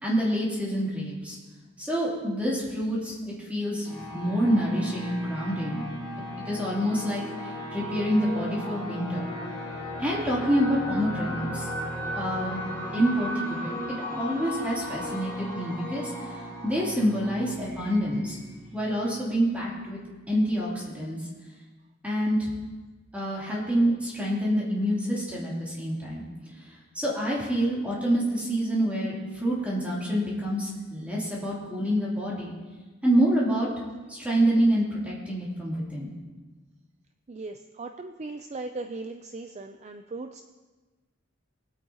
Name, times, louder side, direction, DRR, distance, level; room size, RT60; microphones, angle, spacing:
voice 1, 0.0-1.4 1.8-3.2 3.4-5.9 6.4-7.2 7.7-9.3 10.0-11.7 12.1-12.6 12.9-16.1 16.6-18.4 18.7-20.0 20.3-21.2 22.0-22.5 23.1-26.2 26.9-32.5 33.0-33.7 34.1-36.1, equal, 5° right, -6 dB, 3.1 m, -27 dB
sound 1, 3.9-19.2, equal, 10° left, 3.6 m, -36 dB
voice 2, 37.3-40.4, right 3 dB, 35° right, 7 dB, 0.4 m, -38 dB
22.0 x 8.5 x 2.9 m, 1.3 s
head